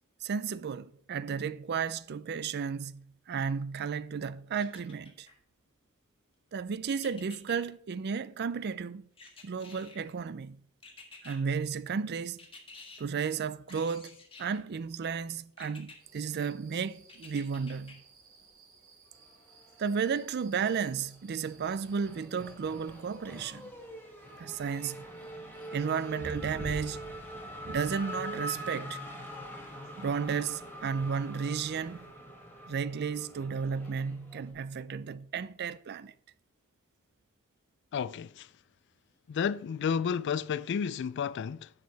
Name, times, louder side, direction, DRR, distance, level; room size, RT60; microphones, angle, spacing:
voice 1, 0.2-5.3 6.5-9.0 9.4-10.6 11.2-12.4 13.0-18.0 19.8-23.7 24.4-25.1 25.7-27.1 27.7-29.1 30.0-32.0 32.7-36.1, right 6 dB, 50° right, 0.4 m, -33 dB
sound 1, 4.6-5.3 6.9-7.6 9.2-10.1 10.8-11.4 12.4-13.0 13.7-14.6 15.6-16.0 17.1-17.9 18.4-18.5, left 3 dB, 25° left, 1.5 m, -51 dB
sound 2, 16.0-32.1, right 1 dB, 70° right, 3.3 m, -52 dB
Race car auto racing / Accelerating revving vroom, 19.5-20.5 20.8-34.5, right 1 dB, 10° left, 1.8 m, -44 dB
voice 2, 37.9-38.5 39.3-41.7, left 7 dB, 55° left, 0.3 m, -31 dB
10.5 x 6.6 x 4.1 m
head